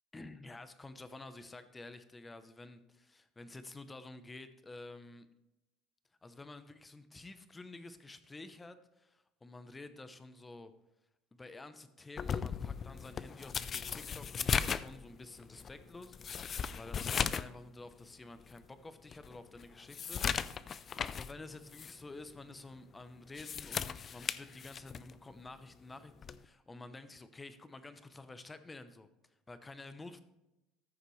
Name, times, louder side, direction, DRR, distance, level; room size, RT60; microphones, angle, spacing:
voice 1, 0.1-5.3 6.2-10.7 11.3-20.7 21.1-29.1 29.5-30.2, left 2 dB, 15° left, 11 dB, 0.8 m, -50 dB
sound 1, 12.2-17.6 17.9-18.0 18.6-18.7 19.1-21.3 21.7-21.9 23.2-25.1 26.2-26.4, left 7 dB, 30° left, 0.4 m, -37 dB
14.0 x 6.6 x 3.2 m, 0.93 s
cardioid pair, 125°, 0 cm